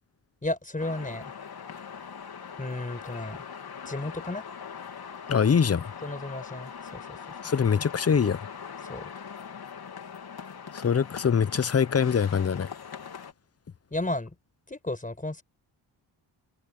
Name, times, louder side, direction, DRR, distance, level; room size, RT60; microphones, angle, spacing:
voice 1, 0.4-1.3 2.6-3.4 3.8-4.4 6.0-7.2 8.8-9.1 13.9-14.3 14.7-15.4, left 2 dB, 15° left, 5.1 m, -33 dB
sound 1, 0.8-13.3, left 7 dB, 55° left, 3.8 m, -41 dB
voice 2, 5.3-5.9 7.4-8.4 10.7-12.7, left 6 dB, 35° left, 0.8 m, -23 dB
cardioid pair, 70°, 45 cm